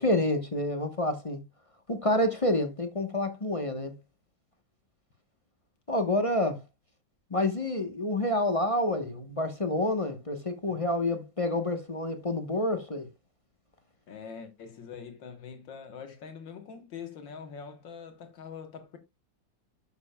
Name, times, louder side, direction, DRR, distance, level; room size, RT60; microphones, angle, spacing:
voice 1, 0.0-1.4 1.9-3.9 5.9-6.6 7.3-13.1, left 1 dB, 25° left, 0.7 m, -28 dB
voice 2, 14.1-19.0, left 6 dB, 70° left, 1.9 m, -44 dB
11.5 x 7.0 x 2.2 m
omnidirectional pair, 2.1 m